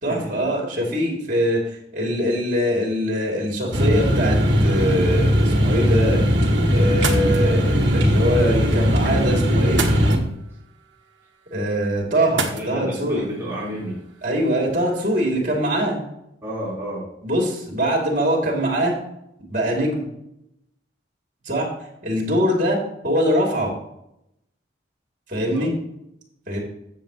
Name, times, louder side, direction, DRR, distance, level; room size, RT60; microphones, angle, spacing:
voice 1, 0.0-6.2 6.7-9.8 11.5-13.3 14.2-16.0 17.2-18.9 19.4-20.1 21.4-21.7 22.0-23.7 25.3-25.7 26.5-26.6, equal, 45° right, -1 dB, 2.8 m, -23 dB
sound 1, 3.7-10.2, equal, 65° right, 1.8 m, -19 dB
sound 2, 6.9-15.3, right 5 dB, 80° right, 1.3 m, -35 dB
voice 2, 12.5-14.0 16.4-17.0 25.3-25.7, equal, 15° right, -9 dB, 3.9 m, -31 dB
13.5 x 7.3 x 3.0 m, 0.80 s
head